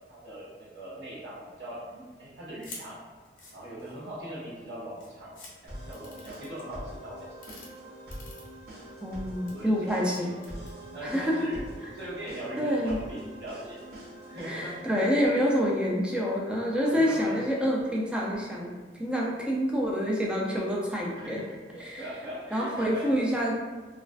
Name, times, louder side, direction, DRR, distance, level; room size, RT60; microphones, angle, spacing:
voice 1, 0.1-3.0 3.5-5.3 5.6-7.3 9.5-10.2 10.9-11.6 11.9-13.8 14.3-14.8 16.8-17.7 21.1-21.4 21.7-23.2, right 1 dB, 85° right, -8 dB, 0.9 m, -40 dB
sound 1, 2.6-2.8 3.2-4.1 4.7-4.8 5.0-5.5 5.9-6.6 7.3-7.7 8.1-8.9 9.3-9.5 10.1-10.7, left 3 dB, 50° left, 0.6 m, -46 dB
sound 2, 5.7-15.3, right 1 dB, 60° right, 0.7 m, -44 dB
voice 2, 9.0-10.3 11.0-11.5 12.6-13.0 14.5-21.4 21.8-22.0 22.5-23.6, equal, 5° right, -3 dB, 0.3 m, -27 dB
2.4 x 2.3 x 2.2 m, 1.3 s
head